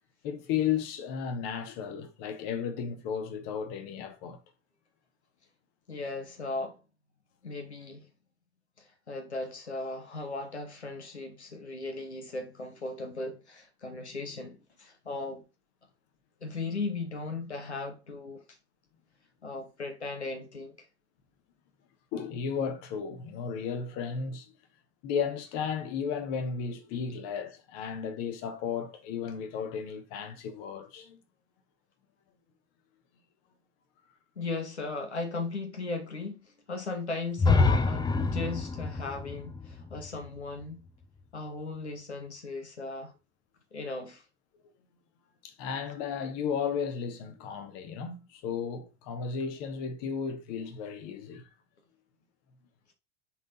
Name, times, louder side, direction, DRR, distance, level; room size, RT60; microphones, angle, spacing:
voice 1, 0.2-4.4 22.1-24.5 25.0-31.2 45.4-51.5, left 7 dB, 50° left, 1.3 m, -34 dB
voice 2, 5.9-6.8 7.4-8.1 8.8-15.4 16.4-18.6 19.4-20.9 34.4-40.8 41.3-43.1 43.7-44.2, left 3 dB, 85° left, 1.1 m, -37 dB
sound 1, 37.4-41.2, left 3 dB, 15° left, 0.6 m, -27 dB
6.2 x 3.8 x 4.2 m
figure-of-eight pair, 75°, 33 cm